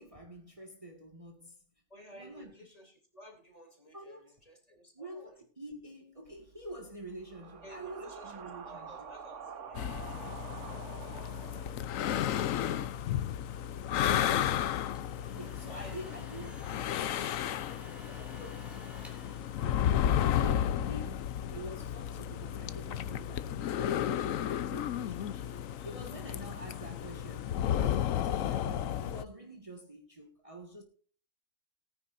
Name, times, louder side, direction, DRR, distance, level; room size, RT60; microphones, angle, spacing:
voice 1, 0.0-1.6 2.1-2.5 3.9-4.4 4.9-9.1 12.6-13.0 14.1-14.7 15.3-16.5 18.4-18.6 19.6-30.8, right 1 dB, 25° right, 1.8 m, -47 dB
voice 2, 1.9-5.4 7.6-11.9 15.5-16.3 17.8-19.1, equal, 25° left, 3.4 m, -55 dB
sound 1, 6.2-12.4, right 6 dB, 65° right, 1.4 m, -48 dB
sound 2, 9.7-29.2, left 10 dB, 75° left, 1.1 m, -33 dB
sound 3, 14.8-20.4, equal, ahead, 3.3 m, -54 dB
19.0 x 9.8 x 2.6 m
omnidirectional pair, 1.4 m